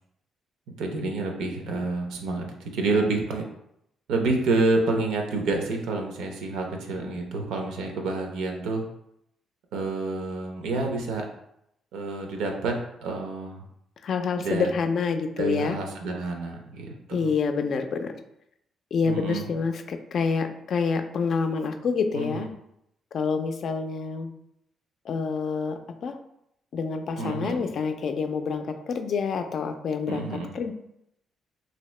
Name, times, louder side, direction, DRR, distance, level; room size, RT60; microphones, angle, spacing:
voice 1, 0.8-2.5 2.7-3.4 4.1-8.9 9.7-11.3 11.9-12.7 13.0-13.6 14.4-14.7 15.4-17.3 19.0-19.4 22.1-22.5 27.2-27.6 30.1-30.5, right 3 dB, 90° right, 2 dB, 0.6 m, -28 dB
voice 2, 14.0-15.8 17.1-18.1 18.9-22.5 23.1-24.3 25.1-26.2 26.7-30.2 30.5-30.7, left 5 dB, 60° left, 7 dB, 0.4 m, -27 dB
2.8 x 2.8 x 3.1 m, 0.78 s
cardioid pair, 90°, 0 cm